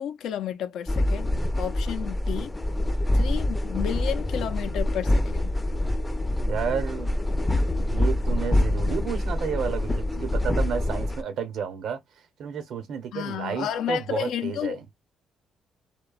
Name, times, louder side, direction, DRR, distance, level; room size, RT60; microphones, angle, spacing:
voice 1, 0.0-2.6 3.1-5.5 13.1-14.8, left 9 dB, 80° left, 0.5 m, -32 dB
sound 1, 0.9-11.2, left 1 dB, 15° left, 0.5 m, -25 dB
voice 2, 6.4-7.2 7.8-12.0 12.4-14.8, right 7 dB, 70° right, 0.8 m, -31 dB
2.8 x 2.1 x 2.3 m
cardioid pair, 90°, 0 cm